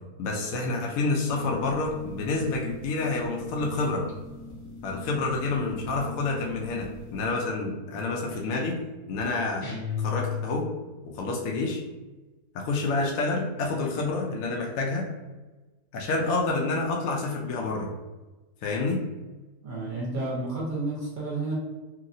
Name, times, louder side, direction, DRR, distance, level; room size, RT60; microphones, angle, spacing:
voice 1, 0.2-4.0 4.8-8.8 9.1-9.7 10.0-10.7 11.0-11.8 12.5-15.1 15.9-17.9 18.6-19.0, left 3 dB, 70° left, -1 dB, 0.9 m, -28 dB
sound 1, 1.3-7.3, left 2 dB, 25° left, 0.8 m, -43 dB
sound 2, 9.6-11.0, left 8 dB, 45° left, 0.4 m, -31 dB
voice 2, 19.6-21.5, right 2 dB, 40° right, -5 dB, 0.8 m, -31 dB
2.9 x 2.8 x 2.6 m, 1.2 s
omnidirectional pair, 1.7 m